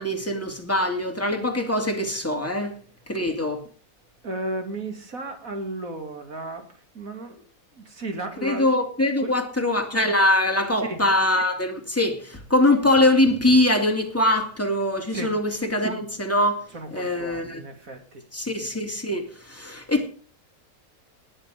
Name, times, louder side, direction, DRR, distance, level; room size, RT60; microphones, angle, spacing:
voice 1, 0.0-2.8 3.1-3.6 8.4-16.6 16.9-17.6 18.3-20.1, left 1 dB, 10° left, 2.7 m, -23 dB
voice 2, 4.2-6.7 6.9-7.4 7.8-8.7 9.2-9.4 10.8-11.0 15.1-15.3 16.7-18.2, right 2 dB, 65° right, 3.0 m, -34 dB
19.0 x 8.8 x 5.1 m
omnidirectional pair, 1.5 m